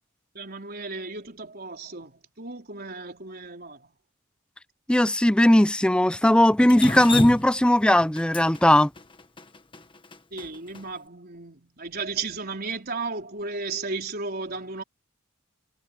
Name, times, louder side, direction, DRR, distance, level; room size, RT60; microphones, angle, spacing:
voice 1, 0.3-3.9 10.3-14.8, right 4 dB, 50° right, 4.4 m, -34 dB
voice 2, 4.9-8.9, left 1 dB, 5° left, 0.5 m, -18 dB
Drip, 6.7-10.8, left 3 dB, 25° left, 1.3 m, -31 dB
head